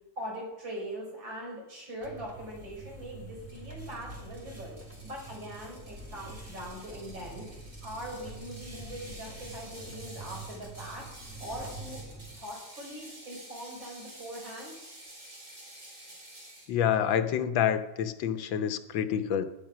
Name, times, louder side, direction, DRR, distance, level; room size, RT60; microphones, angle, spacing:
voice 1, 0.2-4.8 5.0-7.5 7.8-11.1 11.4-12.0 12.3-14.7, equal, 75° right, -1 dB, 6.3 m, -41 dB
sound 1, 2.0-12.4, right 2 dB, 10° right, 1.9 m, -46 dB
Ratchet pawl, 3.5-16.7, right 1 dB, 40° right, 5.1 m, -50 dB
voice 2, 16.7-19.4, left 9 dB, 85° left, 10 dB, 1.7 m, -27 dB
18.0 x 11.0 x 6.1 m, 0.97 s
omnidirectional pair, 2.0 m